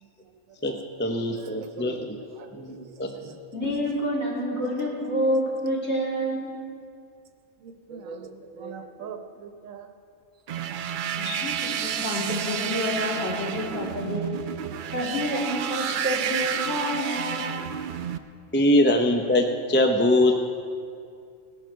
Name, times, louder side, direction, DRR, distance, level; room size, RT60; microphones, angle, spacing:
voice 1, 0.6-2.0 2.6-3.1 18.5-20.4, left 1 dB, 10° left, 3 dB, 0.5 m, -22 dB
voice 2, 1.2-2.1 2.4-3.3 7.9-9.8, right 5 dB, 85° right, 7 dB, 1.3 m, -42 dB
voice 3, 3.5-6.5 11.2-14.2 14.9-17.7, equal, 55° left, -5 dB, 3.3 m, -28 dB
sound 1, 10.5-18.2, right 8 dB, 60° right, 0.5 m, -30 dB
18.5 x 11.5 x 4.6 m, 2.3 s
omnidirectional pair, 1.4 m